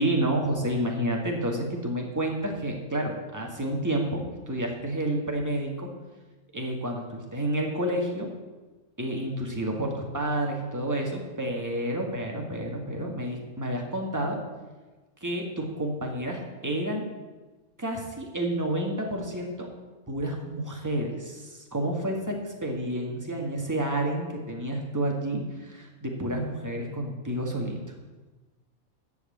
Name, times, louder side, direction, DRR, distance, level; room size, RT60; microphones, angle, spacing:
voice 1, 0.0-5.9 6.5-8.3 9.0-14.4 15.2-17.2 17.8-19.7 20.1-27.8, right 1 dB, 15° right, 1 dB, 1.8 m, -30 dB
14.0 x 4.9 x 8.7 m, 1.2 s
omnidirectional pair, 1.5 m